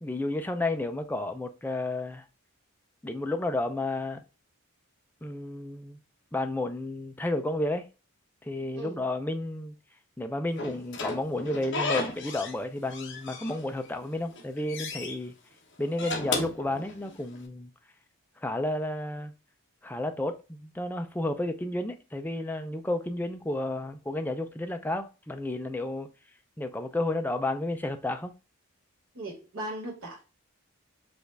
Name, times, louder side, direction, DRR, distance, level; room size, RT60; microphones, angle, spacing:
voice 1, 0.0-2.3 3.0-4.2 5.2-6.0 6.3-7.9 8.4-9.8 10.2-15.3 15.8-17.7 18.4-19.3 19.8-26.1 26.6-28.3, left 2 dB, 10° left, 0.4 m, -32 dB
Slam / Squeak, 10.6-12.6 12.9-13.9 14.3-15.1 15.8-17.4, left 3 dB, 55° left, 0.9 m, -34 dB
voice 2, 29.1-30.2, right 1 dB, 60° right, 1.4 m, -38 dB
5.1 x 2.5 x 3.2 m
head